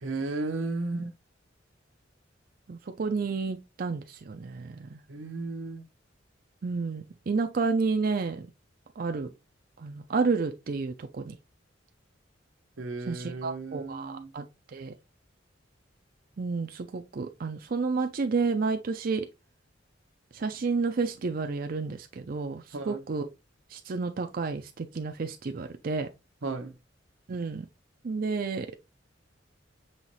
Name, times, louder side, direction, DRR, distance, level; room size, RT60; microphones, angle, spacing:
voice 1, 0.0-1.1 5.1-5.9 12.8-14.3 22.7-23.0 26.4-26.7, right 3 dB, 90° right, 0.8 m, -34 dB
voice 2, 2.7-5.0 6.6-8.5 9.0-9.3 9.8-11.4 13.1-14.4 14.7-14.9 16.4-19.3 20.3-23.3 23.7-26.1 27.3-27.7 28.0-28.7, right 4 dB, 50° right, 0.4 m, -30 dB
5.6 x 3.1 x 2.9 m
head